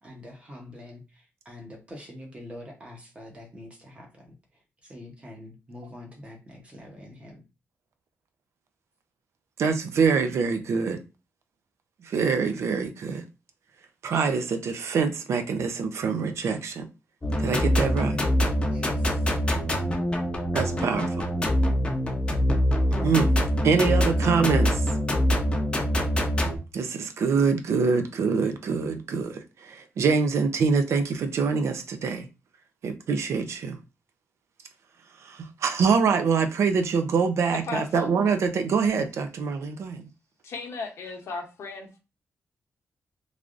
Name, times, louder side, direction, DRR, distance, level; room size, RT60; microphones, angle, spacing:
voice 1, 0.0-4.3 4.8-7.4 18.7-19.3, left 1 dB, 25° right, 0.9 m, -45 dB
voice 2, 9.6-11.0 12.1-13.2 14.0-16.9 17.4-18.2 20.5-21.3 23.0-23.3 23.6-24.8 26.7-32.3 32.8-33.8 35.2-40.0, right 5 dB, 70° right, 0.4 m, -25 dB
sound 1, 17.2-26.6, equal, 20° left, 0.6 m, -24 dB
voice 3, 37.5-38.1 40.4-42.0, left 4 dB, 70° left, 0.7 m, -35 dB
3.3 x 2.5 x 2.4 m
wide cardioid pair, 165°, 5 cm